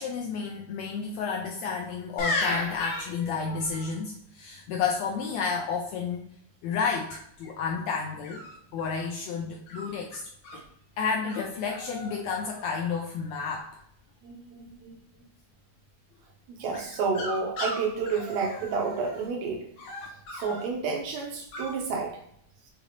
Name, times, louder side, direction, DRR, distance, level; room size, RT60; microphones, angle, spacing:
voice 1, 0.0-6.3 6.6-8.4 8.7-10.3 11.0-13.7, left 5 dB, 80° left, 1 dB, 1.6 m, -31 dB
sound 1, 2.2-3.9 7.1-7.5 8.2-9.1 9.7-10.6 11.3-11.4 11.7-12.2 12.4-13.0 16.7-19.2 19.8-20.6 21.5-21.7, left 2 dB, 65° left, 1.7 m, -35 dB
voice 2, 14.2-15.0 16.5-19.6 20.3-22.1, right 4 dB, 80° right, 1 dB, 1.8 m, -30 dB
6.5 x 2.9 x 2.7 m, 0.71 s
omnidirectional pair, 3.6 m